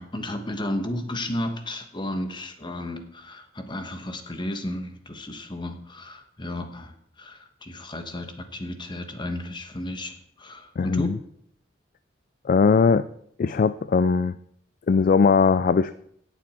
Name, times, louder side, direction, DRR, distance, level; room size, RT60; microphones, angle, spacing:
voice 1, 0.0-6.9 7.2-11.1, left 1 dB, 25° left, 7 dB, 1.2 m, -33 dB
voice 2, 10.8-11.1 12.5-13.1 13.4-14.3 14.9-15.9, left 5 dB, 45° left, 14 dB, 0.3 m, -19 dB
18.0 x 7.0 x 4.4 m, 0.68 s
head